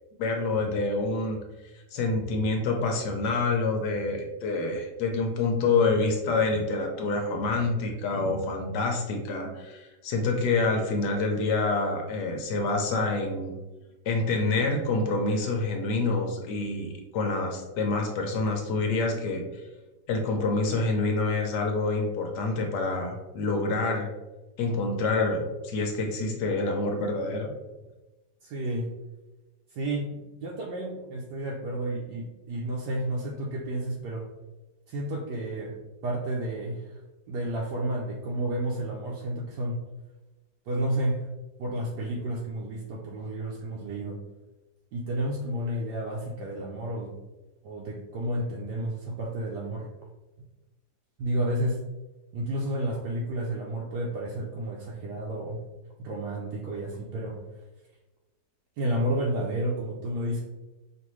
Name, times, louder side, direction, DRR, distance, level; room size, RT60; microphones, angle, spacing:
voice 1, 0.2-1.4 1.9-13.6 14.1-19.4 20.1-24.1 24.6-27.5, left 3 dB, 70° left, 2 dB, 1.2 m, -27 dB
voice 2, 28.4-28.9 29.7-34.3 34.9-35.8 36.0-36.9 37.3-39.8 40.7-41.2 41.6-44.2 44.9-47.1 47.6-49.9 51.2-51.8 52.3-55.6 56.0-57.4 58.8-60.4, right 1 dB, 70° right, -2 dB, 1.2 m, -31 dB
5.2 x 2.6 x 3.1 m, 1.1 s
omnidirectional pair, 2.0 m